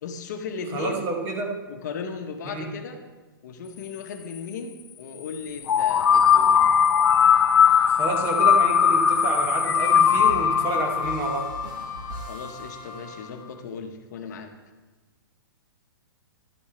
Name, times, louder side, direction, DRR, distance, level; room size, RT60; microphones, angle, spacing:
voice 1, 0.0-1.0 1.7-3.0 3.4-6.8 7.6-7.8 12.2-14.5, left 5 dB, 50° left, 6 dB, 1.0 m, -36 dB
voice 2, 0.7-1.6 2.5-2.7 7.8-11.5, right 3 dB, 20° right, 3 dB, 0.9 m, -29 dB
sound 1, 5.7-12.5, left 7 dB, 90° left, 0.5 m, -19 dB
sound 2, 9.8-13.7, right 1 dB, 60° right, 2.4 m, -41 dB
11.0 x 8.4 x 3.2 m, 1.3 s
hypercardioid pair, 160°, 12 cm